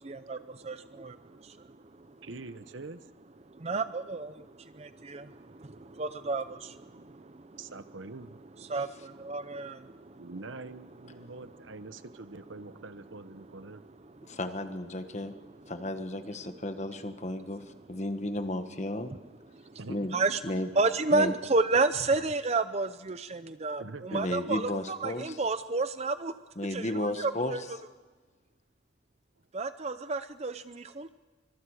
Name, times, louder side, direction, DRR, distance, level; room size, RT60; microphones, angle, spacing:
voice 1, 0.0-2.2 3.5-7.6 8.6-10.3 14.2-14.4 20.1-20.4 20.8-26.3 26.7-27.6 29.5-31.1, right 3 dB, 30° right, 12 dB, 0.5 m, -31 dB
voice 2, 2.2-3.1 6.9-7.0 7.6-8.4 10.2-13.8 19.8-20.4 23.8-24.4, right 3 dB, 70° right, 12 dB, 1.0 m, -44 dB
voice 3, 14.3-15.3 15.7-17.6 17.9-19.1 19.9-20.1 20.4-20.7 21.1-21.3 24.1-25.4 26.6-27.7, left 1 dB, 35° left, 8 dB, 1.4 m, -33 dB
24.5 x 23.0 x 4.9 m, 1.3 s
head